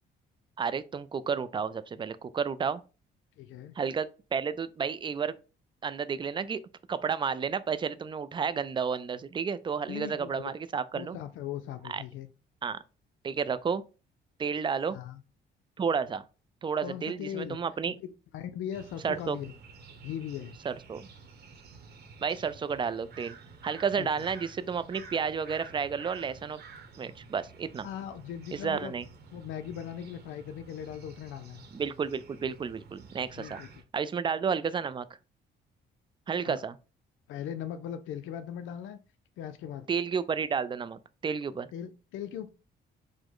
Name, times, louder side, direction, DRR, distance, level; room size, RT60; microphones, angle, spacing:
voice 1, 0.6-2.8 3.8-5.4 5.8-6.6 6.9-11.2 11.9-12.0 12.6-12.8 13.2-13.8 14.4-15.0 15.8-16.2 16.6-18.0 19.0-19.4 20.6-21.1 22.2-23.3 23.6-26.6 27.0-27.9 28.5-29.1 31.7-33.6 33.9-35.1 36.3-36.8 39.9-41.7, right 6 dB, 25° right, 0.3 m, -31 dB
voice 2, 3.4-3.7 9.9-10.5 10.9-12.3 14.9-15.2 16.8-17.6 18.0-18.1 18.3-19.5 20.0-20.5 24.0-24.1 27.8-28.9 29.3-31.6 33.4-33.7 36.4-36.6 37.3-39.0 39.4-39.9 41.7-42.5, left 10 dB, 80° left, 0.4 m, -39 dB
sound 1, 18.7-33.8, right 4 dB, 55° right, 1.0 m, -50 dB
4.9 x 2.1 x 3.7 m
cardioid pair, 90°, 20 cm